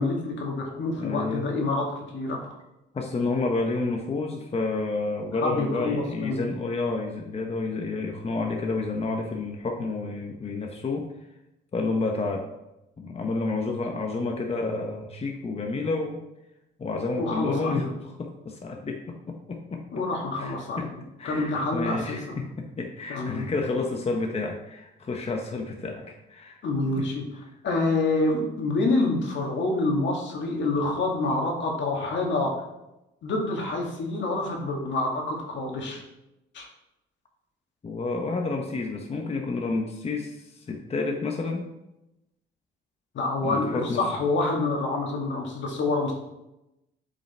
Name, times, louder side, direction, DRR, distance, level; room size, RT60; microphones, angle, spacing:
voice 1, 0.0-2.5 5.4-6.5 13.7-13.8 17.2-17.9 19.9-20.9 21.2-22.3 23.1-23.5 26.6-27.2 27.6-32.6 33.2-36.0 36.5-36.7 43.1-46.1, left 2 dB, 70° left, 0 dB, 1.9 m, -27 dB
voice 2, 1.0-1.5 2.9-11.1 11.7-12.5 13.0-16.2 16.8-20.0 20.4-20.9 21.2-26.6 27.0-27.1 37.8-41.7 43.4-44.1, left 3 dB, 30° left, 2 dB, 0.9 m, -30 dB
7.6 x 5.2 x 4.3 m, 0.92 s
cardioid pair, 90°, 20 cm